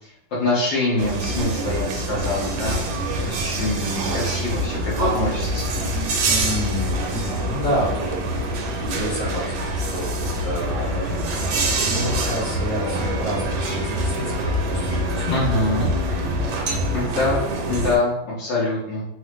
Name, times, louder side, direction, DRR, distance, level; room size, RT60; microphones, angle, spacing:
voice 1, 0.0-2.8 3.2-5.8 15.3-15.9 16.9-19.1, left 2 dB, 75° left, -8 dB, 1.6 m, -24 dB
sound 1, 1.0-18.0, right 1 dB, 70° right, 1.1 m, -25 dB
voice 2, 6.2-8.4 8.8-15.4, equal, 50° left, -7 dB, 1.8 m, -29 dB
3.8 x 2.1 x 3.0 m, 0.83 s
omnidirectional pair, 2.0 m